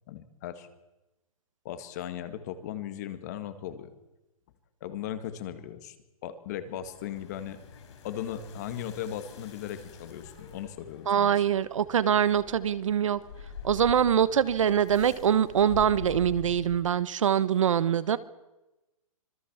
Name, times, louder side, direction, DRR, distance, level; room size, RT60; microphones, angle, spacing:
voice 1, 0.1-0.7 1.7-3.9 4.8-6.0 6.2-7.6 8.0-11.4, left 10 dB, 30° left, 1.8 m, -37 dB
sound 1, 6.6-17.0, left 6 dB, 50° left, 6.7 m, -45 dB
voice 2, 11.1-13.2 13.6-18.2, right 9 dB, 60° right, 1.2 m, -24 dB
26.0 x 20.0 x 7.3 m
hypercardioid pair, 175°, 18 cm